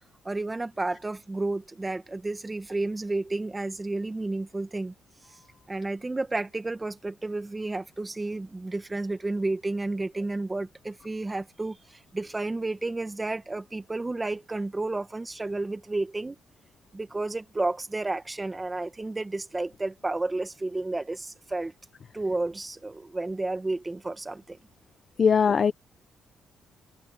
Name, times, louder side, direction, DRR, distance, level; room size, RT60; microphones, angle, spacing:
voice 1, 0.3-4.9 5.7-16.4 16.9-21.7 22.1-24.6, right 2 dB, 20° right, 1.8 m, -31 dB
voice 2, 25.2-25.7, left 6 dB, 45° left, 1.0 m, -20 dB
cardioid pair, 90°, 0 cm